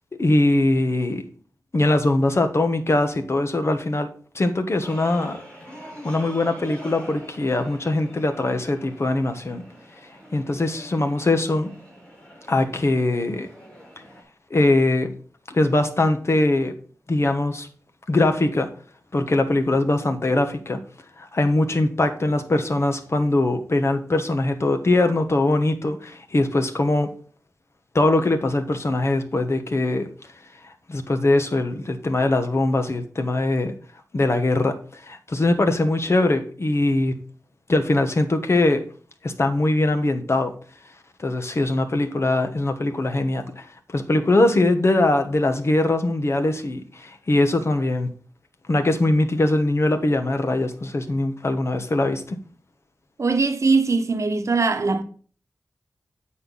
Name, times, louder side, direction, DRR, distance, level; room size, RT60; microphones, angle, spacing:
voice 1, 0.2-1.2 1.7-5.4 6.0-9.6 10.3-11.7 12.5-13.5 14.5-15.1 15.5-16.7 17.1-17.7 18.1-18.7 19.1-20.8 21.2-27.1 27.9-30.1 30.6-33.7 34.1-37.2 37.7-38.9 39.2-40.5 41.2-48.1 48.7-52.4, left 2 dB, 50° left, 1.2 m, -22 dB
sound 1, 4.8-14.2, equal, 20° left, 3.8 m, -44 dB
voice 2, 53.2-55.0, right 4 dB, 60° right, 0.9 m, -21 dB
9.2 x 4.4 x 5.4 m
wide cardioid pair, 60°, 6 cm